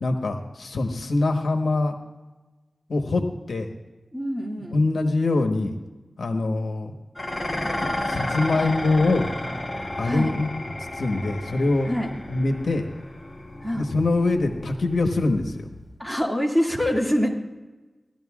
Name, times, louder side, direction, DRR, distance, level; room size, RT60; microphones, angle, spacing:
voice 1, 0.0-1.9 2.9-3.7 4.7-5.7 6.2-6.9 7.8-9.3 10.0-10.5 10.9-11.9 12.3-12.9 13.7-15.7, left 2 dB, 90° left, 4 dB, 1.2 m, -24 dB
voice 2, 4.1-4.8 10.0-10.3 11.9-12.1 13.6-13.8 16.0-17.3, equal, ahead, -1 dB, 2.1 m, -25 dB
Dishes pots and pans, 7.1-16.0, left 1 dB, 25° left, 2.6 m, -32 dB
18.0 x 12.0 x 2.4 m, 1.2 s
wide cardioid pair, 65°, 0 cm